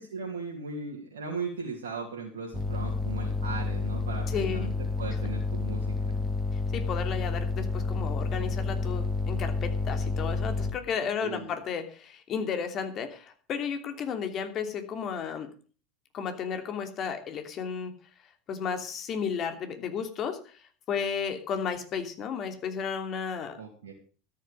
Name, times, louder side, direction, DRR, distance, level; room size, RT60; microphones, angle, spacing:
voice 1, 0.0-6.1 11.2-11.6 23.5-23.9, right 4 dB, 80° right, -1 dB, 2.9 m, -38 dB
sound 1, 2.5-10.7, left 3 dB, 10° left, 2.8 m, -30 dB
voice 2, 4.3-4.7 6.5-15.5 16.1-17.9 18.5-23.6, left 6 dB, 45° left, 7 dB, 2.9 m, -33 dB
13.5 x 10.5 x 5.3 m, 0.39 s
hypercardioid pair, 80°, 0 cm